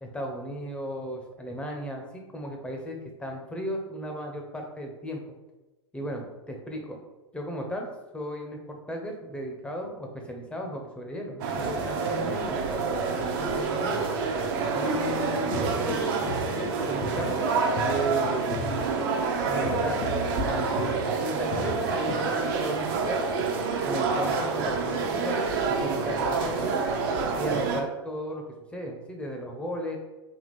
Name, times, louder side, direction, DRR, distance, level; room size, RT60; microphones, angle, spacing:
voice 1, 0.0-5.2 5.9-7.0 7.3-7.9 8.1-12.6 13.2-14.1 14.7-17.4 17.8-18.6 19.5-20.0 20.4-23.2 23.8-26.8 27.4-28.4 28.7-30.0, equal, 5° left, 2 dB, 0.7 m, -35 dB
sound 1, 11.4-27.8, right 4 dB, 45° right, 0.7 m, -27 dB
sound 2, 15.3-22.3, left 3 dB, 40° left, 0.5 m, -37 dB
4.1 x 2.8 x 3.3 m, 1.1 s
figure-of-eight pair, 100°, 15 cm